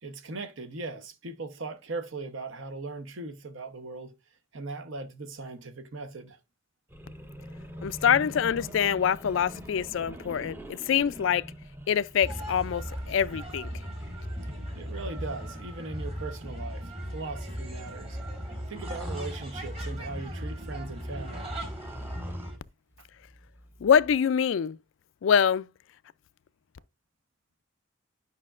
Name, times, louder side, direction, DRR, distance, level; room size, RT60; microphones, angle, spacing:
voice 1, 0.0-4.1 4.5-6.4 14.7-18.2 18.7-21.5, right 3 dB, 65° right, 0.9 m, -39 dB
sound 1, 6.9-15.6 16.1-19.3 20.2-22.6 22.9-24.2, equal, 10° right, 0.6 m, -46 dB
voice 2, 7.8-11.5 11.9-13.7 23.8-24.8 25.2-25.7, left 8 dB, 65° left, 0.3 m, -25 dB
sound 2, 12.2-22.6, equal, 30° right, 1.7 m, -37 dB
9.6 x 5.7 x 2.4 m
head